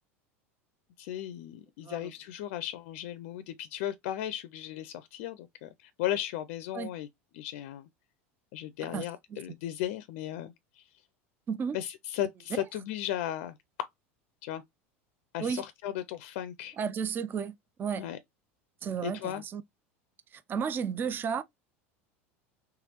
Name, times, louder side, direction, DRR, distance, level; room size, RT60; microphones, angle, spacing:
voice 1, 1.0-7.1 7.3-7.9 8.5-10.9 11.7-13.9 14.4-14.6 15.3-16.8 18.0-18.2 19.0-19.4, left 12 dB, 65° left, 0.4 m, -36 dB
voice 2, 16.8-18.1 18.8-19.6 20.3-21.4, right 6 dB, 30° right, 0.4 m, -33 dB
3.5 x 3.2 x 2.9 m
hypercardioid pair, 90°, 7 cm